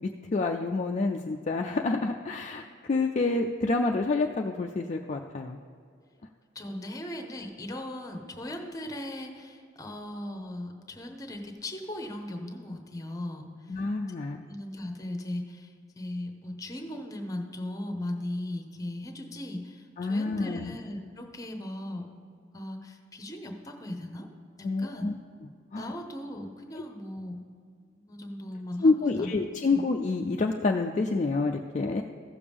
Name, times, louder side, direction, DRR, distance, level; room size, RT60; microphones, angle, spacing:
voice 1, 0.3-5.6 13.7-14.4 20.0-20.8 24.6-25.1 25.7-25.8 28.8-32.0, left 3 dB, 35° left, 3 dB, 0.4 m, -28 dB
voice 2, 6.5-13.8 14.4-22.1 22.4-24.3 24.6-25.1 25.8-27.4 27.9-28.9 29.2-29.3 29.7-29.8, left 1 dB, 15° left, 4 dB, 0.8 m, -38 dB
15.0 x 6.8 x 3.5 m, 2.3 s
head